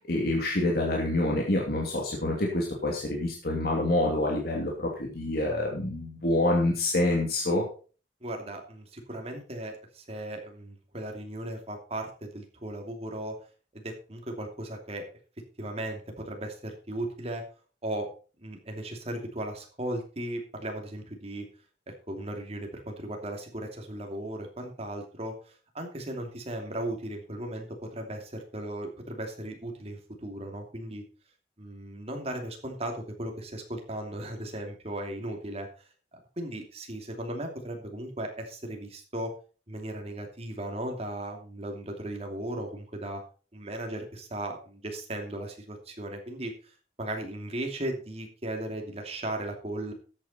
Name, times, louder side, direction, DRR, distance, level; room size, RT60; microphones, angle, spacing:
voice 1, 0.0-7.6, left 1 dB, 60° left, -1 dB, 2.7 m, -27 dB
voice 2, 8.2-13.3 13.7-15.0 15.6-17.4 17.8-18.1 18.4-21.5 22.1-25.3 25.7-31.0 31.6-35.7 36.4-39.3 39.7-43.2 43.5-46.7 47.0-49.9, right 1 dB, 35° right, 3 dB, 2.7 m, -36 dB
13.0 x 8.9 x 4.3 m, 0.38 s
head